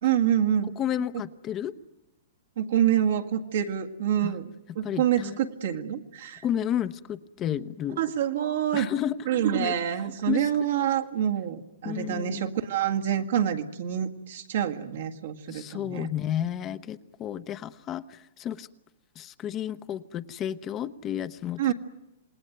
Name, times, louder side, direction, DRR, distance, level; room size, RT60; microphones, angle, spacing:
voice 1, 0.0-0.7 2.6-6.4 8.0-8.9 9.3-16.1 21.6-21.7, right 10 dB, 70° right, 4 dB, 1.9 m, -27 dB
voice 2, 0.8-1.7 4.2-4.3 4.7-5.4 6.4-8.0 8.7-9.3 9.5-9.7 10.2-10.7 11.8-12.4 15.5-18.7 19.2-21.7, left 10 dB, 30° left, 11 dB, 0.9 m, -32 dB
27.5 x 19.5 x 9.3 m, 0.94 s
hypercardioid pair, 130°, 0 cm